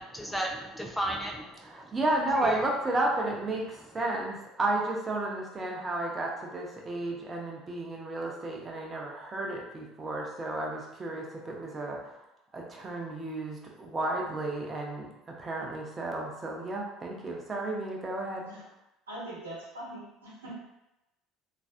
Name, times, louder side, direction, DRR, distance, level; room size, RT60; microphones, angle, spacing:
voice 1, 0.0-1.9 2.4-2.6, right 1 dB, 5° left, 1 dB, 0.5 m, -35 dB
voice 2, 1.6-12.1 12.5-18.5, right 2 dB, 30° right, -1 dB, 0.8 m, -32 dB
voice 3, 19.1-20.6, right 1 dB, 85° right, -6 dB, 0.9 m, -42 dB
3.1 x 2.6 x 2.5 m, 0.91 s
figure-of-eight pair, 65°, 0 cm